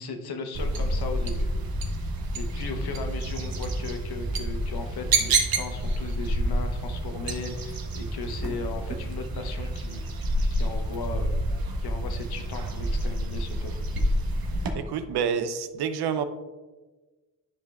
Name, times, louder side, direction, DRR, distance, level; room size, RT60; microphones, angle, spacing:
voice 1, 0.0-1.5 2.1-11.3 11.8-13.7, left 4 dB, 75° left, 5 dB, 0.9 m, -37 dB
sound 1, 0.5-14.7, right 1 dB, 65° right, 1.0 m, -28 dB
voice 2, 14.7-16.2, right 7 dB, 85° right, 10 dB, 0.6 m, -28 dB
10.5 x 4.9 x 2.3 m, 1.3 s
cardioid pair, 60°, 38 cm